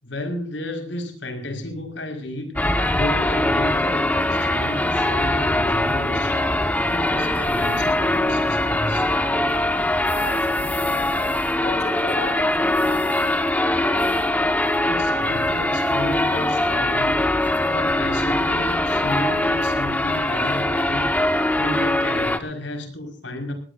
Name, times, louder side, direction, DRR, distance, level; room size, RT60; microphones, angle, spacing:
voice 1, 0.0-9.1 14.9-23.5, left 1 dB, 80° left, 4 dB, 5.5 m, -32 dB
sound 1, 2.6-22.4, left 1 dB, 10° left, 1.4 m, -22 dB
voice 2, 10.1-11.3 11.6-13.0, left 2 dB, 55° left, 2 dB, 5.4 m, -35 dB
20.5 x 18.0 x 2.7 m, 0.42 s
head